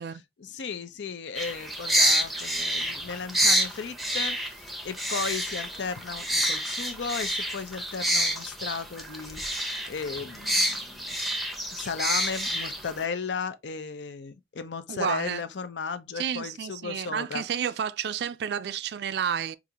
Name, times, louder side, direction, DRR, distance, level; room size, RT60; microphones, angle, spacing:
voice 1, 0.4-4.6 4.8-11.2 11.7-17.4, left 5 dB, 80° left, 0.6 m, -35 dB
sound 1, 1.3-13.0, right 1 dB, ahead, 0.6 m, -28 dB
voice 2, 14.9-15.4 16.2-19.6, right 8 dB, 65° right, 0.3 m, -30 dB
4.8 x 2.5 x 2.8 m
head